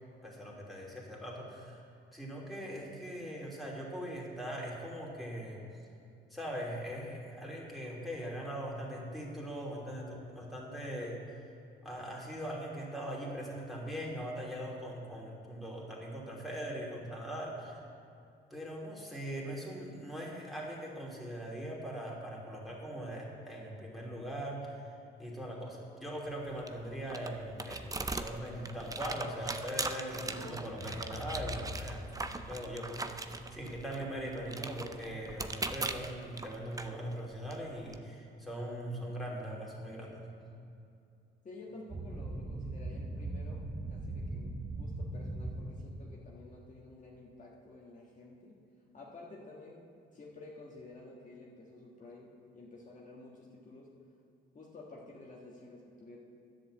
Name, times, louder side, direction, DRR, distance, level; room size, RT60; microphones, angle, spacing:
voice 1, 0.2-1.8 2.1-5.6 6.3-11.2 11.8-17.8 18.5-24.8 25.2-32.0 32.5-40.3, equal, ahead, -4 dB, 3.1 m, -41 dB
sound 1, 26.3-38.0, right 3 dB, 15° right, 0.6 m, -41 dB
sound 2, 30.1-33.1, left 2 dB, 80° left, 2.5 m, -45 dB
voice 2, 41.4-48.6 48.9-53.9 54.5-56.2, left 2 dB, 40° left, -4 dB, 1.7 m, -51 dB
sound 3, 41.9-46.1, right 2 dB, 60° right, 3.1 m, -39 dB
10.5 x 7.7 x 7.8 m, 2.5 s
cardioid pair, 90°, 20 cm